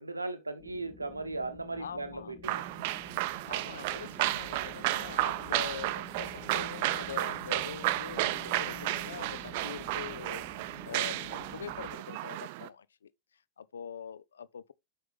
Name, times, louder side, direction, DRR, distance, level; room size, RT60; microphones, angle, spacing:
voice 1, 0.0-2.6, right 3 dB, 80° right, 1.0 m, -37 dB
sound 1, 0.6-12.0, left 5 dB, 20° left, 1.5 m, -51 dB
voice 2, 1.8-2.3 3.5-10.4 10.8-13.1 13.6-14.7, left 7 dB, 70° left, 0.5 m, -43 dB
sound 2, 2.4-12.7, right 17 dB, 50° right, 0.5 m, -33 dB
7.8 x 5.4 x 3.3 m
figure-of-eight pair, 90°, 0 cm